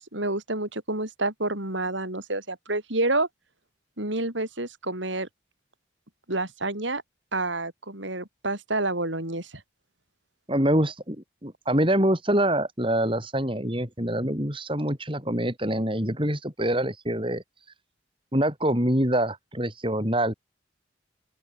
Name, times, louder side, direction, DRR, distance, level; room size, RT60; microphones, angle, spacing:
voice 1, 0.1-3.3 4.0-5.3 6.3-7.0 7.3-9.5, right 2 dB, 75° right, 7.0 m, -28 dB
voice 2, 10.5-11.2 11.4-17.7 18.3-20.3, right 1 dB, 25° right, 7.2 m, -25 dB
open air
head